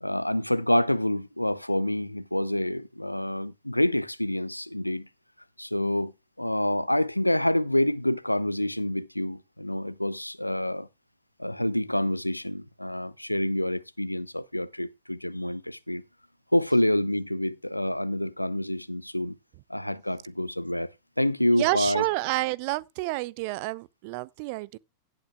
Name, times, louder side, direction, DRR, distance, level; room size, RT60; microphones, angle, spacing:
voice 1, 0.0-5.1 5.6-6.1 6.4-10.9 11.4-16.0 16.5-19.4 19.7-20.9 21.2-22.0, left 1 dB, 85° left, 0.5 m, -27 dB
voice 2, 21.5-24.8, right 21 dB, 45° right, 0.4 m, -29 dB
16.5 x 8.4 x 2.3 m
figure-of-eight pair, 90°, 0 cm